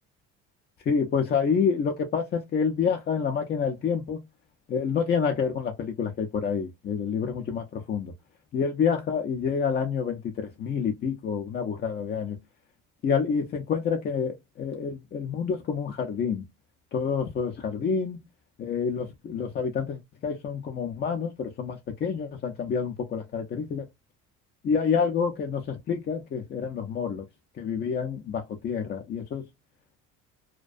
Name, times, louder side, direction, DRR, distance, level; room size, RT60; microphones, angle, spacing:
voice 1, 0.9-4.2 4.7-8.1 8.5-12.4 13.0-16.4 16.9-18.2 18.6-23.8 24.6-27.2 27.6-29.4, left 6 dB, 35° left, 0.4 m, -28 dB
2.4 x 2.2 x 2.4 m
cardioid pair, 115°, 30 cm